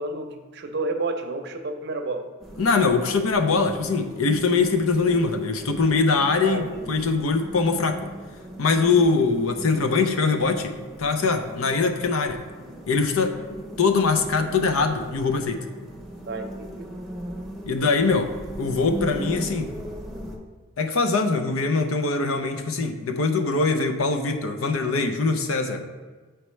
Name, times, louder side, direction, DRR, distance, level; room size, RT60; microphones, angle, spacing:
voice 1, 0.0-2.3 6.4-7.1 7.5-7.6 16.3-16.9, right 2 dB, 55° right, 5 dB, 0.6 m, -31 dB
sound 1, 2.4-20.4, right 1 dB, ahead, 0.7 m, -38 dB
voice 2, 2.6-8.1 8.6-10.7 11.0-12.4 12.9-13.3 13.8-15.6 17.7-19.7 20.8-25.8, left 4 dB, 85° left, 6 dB, 0.6 m, -22 dB
8.0 x 4.3 x 3.2 m, 1.4 s
head